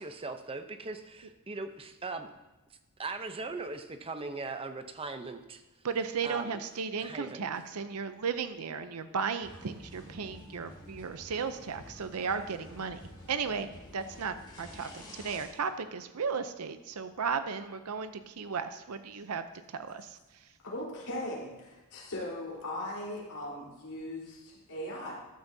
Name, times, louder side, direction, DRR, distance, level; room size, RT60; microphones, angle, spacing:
voice 1, 0.0-2.3 3.0-5.6 6.2-6.6 7.0-7.5, right 3 dB, 25° right, 8 dB, 0.7 m, -39 dB
voice 2, 5.8-13.0 13.3-13.7 13.9-19.4 19.7-20.2, right 5 dB, 80° right, 10 dB, 0.6 m, -35 dB
sound 1, 9.4-15.5, left 1 dB, 20° left, 3.4 m, -50 dB
voice 3, 20.6-25.1, left 1 dB, 85° left, -4 dB, 4.0 m, -39 dB
14.5 x 10.5 x 2.7 m, 1.1 s
head